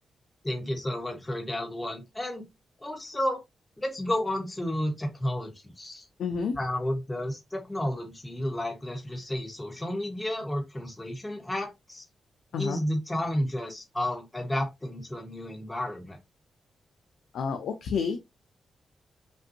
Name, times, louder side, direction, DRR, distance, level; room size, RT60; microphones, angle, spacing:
voice 1, 0.4-2.4 2.8-3.4 3.8-6.1 6.6-12.0 12.6-16.2, left 1 dB, 15° left, 1.4 m, -32 dB
voice 2, 6.2-6.6 12.5-12.8 17.3-18.2, left 5 dB, 85° left, 0.6 m, -29 dB
5.4 x 2.6 x 2.7 m
wide cardioid pair, 130°, 0 cm